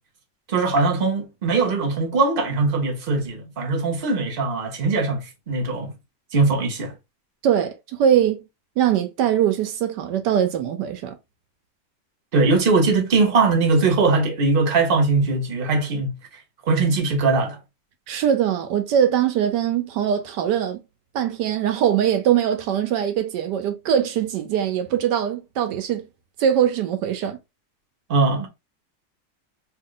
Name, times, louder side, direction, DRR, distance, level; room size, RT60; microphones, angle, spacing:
voice 1, 0.5-5.9 6.3-6.9 12.3-16.1 16.7-17.6 28.1-28.5, right 3 dB, 40° right, 0.8 m, -20 dB
voice 2, 7.4-8.4 8.8-11.2 18.1-20.8 21.1-26.0 26.4-27.4, right 9 dB, 70° right, 1.1 m, -22 dB
2.9 x 2.7 x 3.7 m
omnidirectional pair, 2.1 m